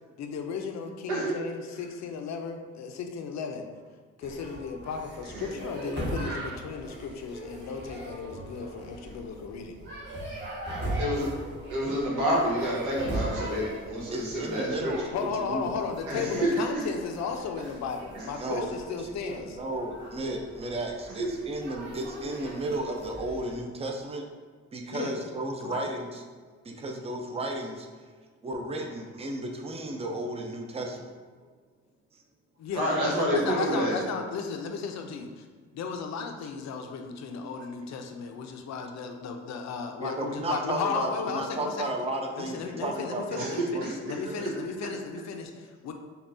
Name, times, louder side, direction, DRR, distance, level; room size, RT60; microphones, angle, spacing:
voice 1, 0.2-3.7 4.2-9.7 15.1-19.6 24.9-25.1 25.6-25.8 32.6-35.4 35.7-41.9 42.4-45.9, left 5 dB, 65° left, 5 dB, 0.5 m, -35 dB
voice 2, 1.1-1.4 5.2-5.4 11.0-11.3 11.7-14.9 16.1-16.8 18.1-18.2 21.2-21.3 32.7-34.0 43.3-43.9, equal, 85° right, -4 dB, 1.3 m, -28 dB
sound 1, 4.2-23.6, right 1 dB, 35° right, 1.3 m, -39 dB
voice 3, 14.1-15.7 16.1-16.5 18.4-24.3 24.7-26.2 26.6-27.9 28.4-31.1 40.0-44.6, right 1 dB, 20° right, 2 dB, 0.5 m, -34 dB
5.4 x 2.3 x 2.6 m, 1.5 s
cardioid pair, 90°, 30 cm